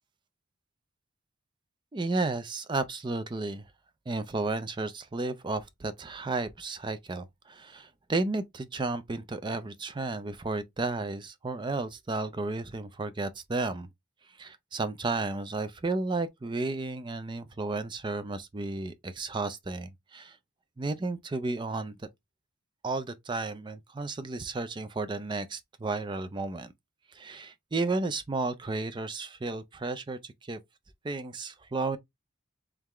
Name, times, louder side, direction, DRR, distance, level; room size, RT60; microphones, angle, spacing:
voice 1, 1.9-3.6 4.1-13.9 14.4-20.4 20.8-22.0 22.8-26.7 27.1-30.6 31.0-32.0, right 3 dB, 20° right, 0.4 m, -33 dB
3.7 x 3.3 x 3.0 m
head